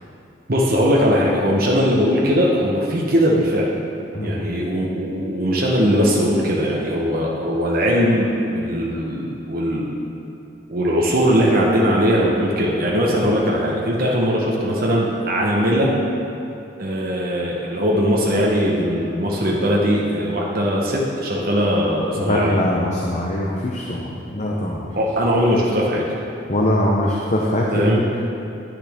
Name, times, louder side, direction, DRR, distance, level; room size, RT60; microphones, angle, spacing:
voice 1, 0.5-3.7 4.2-9.9 10.7-15.9 16.8-22.6 24.9-26.0 27.7-28.0, equal, 50° right, -3 dB, 1.0 m, -20 dB
voice 2, 4.1-4.5 22.2-24.9 26.5-28.2, left 1 dB, 40° left, -2 dB, 0.7 m, -22 dB
10.5 x 9.2 x 3.6 m, 2.7 s
head